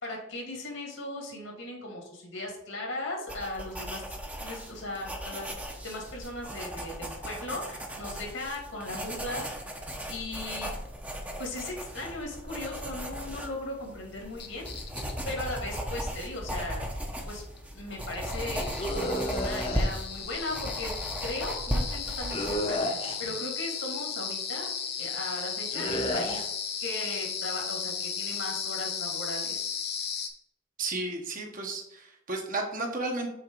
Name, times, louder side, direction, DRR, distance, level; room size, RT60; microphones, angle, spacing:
voice 1, 0.0-4.0 4.4-5.5 5.8-9.4 10.1-10.7 11.4-14.7 15.3-16.8 17.3-17.4 17.7-20.9 21.2-24.7 25.0-26.5 26.8-29.7, left 2 dB, 75° left, 0 dB, 2.4 m, -37 dB
sound 1, 3.3-22.6, equal, 5° right, 0.8 m, -36 dB
sound 2, 14.4-15.3 17.6-17.7 18.0-30.3, left 7 dB, 55° left, 1.0 m, -35 dB
sound 3, 18.8-19.9 22.3-23.3 25.7-26.4, equal, 30° left, 1.0 m, -31 dB
voice 2, 30.8-33.3, right 2 dB, 45° right, 2 dB, 1.2 m, -33 dB
6.5 x 4.5 x 4.6 m, 0.83 s
head